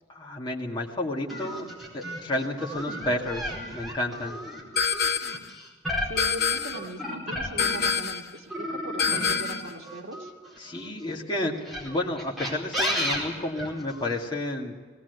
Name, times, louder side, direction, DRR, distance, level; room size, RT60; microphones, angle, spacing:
voice 1, 0.1-1.7 1.9-4.4 10.6-14.7, left 1 dB, 25° left, -2 dB, 2.3 m, -31 dB
sound 1, 1.3-8.1 8.5-10.9 11.6-14.2, left 1 dB, ahead, 4.7 m, -33 dB
sound 2, 4.8-5.5 6.2-6.9 7.6-8.3 9.0-9.7, left 6 dB, 50° left, 1.0 m, -26 dB
voice 2, 6.1-10.3, right 1 dB, 85° right, 0 dB, 1.8 m, -39 dB
19.0 x 18.0 x 8.1 m, 1.5 s
head